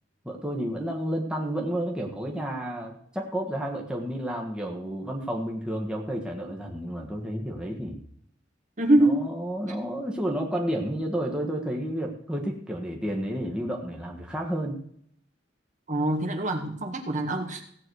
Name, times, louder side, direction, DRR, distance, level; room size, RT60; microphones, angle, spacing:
voice 1, 0.2-8.0 9.0-14.8, equal, 5° right, -1 dB, 1.5 m, -31 dB
voice 2, 8.8-9.3 15.9-17.6, right 1 dB, 40° right, 2 dB, 2.0 m, -24 dB
16.5 x 8.7 x 4.8 m, 0.67 s
head